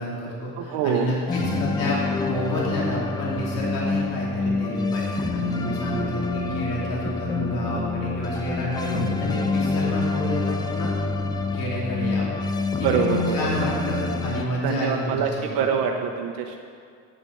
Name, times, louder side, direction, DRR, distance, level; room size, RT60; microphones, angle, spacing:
voice 1, 0.0-10.9 11.5-12.3 12.6-12.7 12.9-15.2 15.7-15.8, left 1 dB, 70° left, -5 dB, 3.0 m, -29 dB
voice 2, 0.6-1.1 12.8-13.5 14.6-16.6, right 7 dB, 80° right, 2 dB, 1.0 m, -25 dB
sound 1, 1.3-14.5, left 3 dB, 10° left, 0.4 m, -27 dB
8.6 x 8.4 x 7.8 m, 2.2 s
cardioid pair, 140°, 35 cm